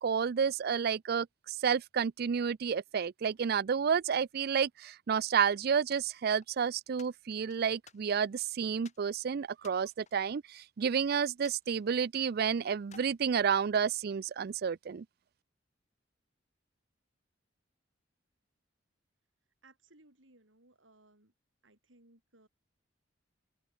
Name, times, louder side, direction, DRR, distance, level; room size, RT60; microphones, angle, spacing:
voice 1, 0.0-15.0, right 7 dB, 55° right, 0.4 m, -30 dB
sound 1, 5.9-6.6 7.0-8.4 8.8-9.1 9.6-10.9 11.4-12.5 12.8-13.2 13.7-14.8, left 6 dB, 40° left, 6.6 m, -59 dB
voice 2, 19.6-21.3 21.6-22.5, right 2 dB, 85° right, 5.3 m, -63 dB
open air
head